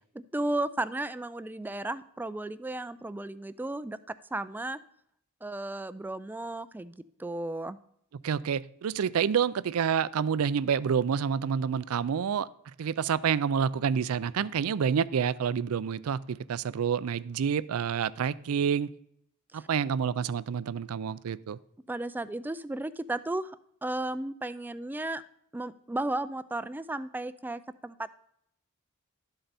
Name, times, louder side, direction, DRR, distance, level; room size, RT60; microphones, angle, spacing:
voice 1, 0.3-4.0 4.3-4.8 5.4-7.8 19.5-19.7 21.9-23.6 23.8-25.2 25.5-28.1, right 2 dB, 10° right, 14 dB, 0.3 m, -34 dB
voice 2, 8.2-12.5 12.8-18.9 19.5-21.6, right 7 dB, 75° right, 19 dB, 0.4 m, -28 dB
12.0 x 7.8 x 4.1 m, 0.71 s
head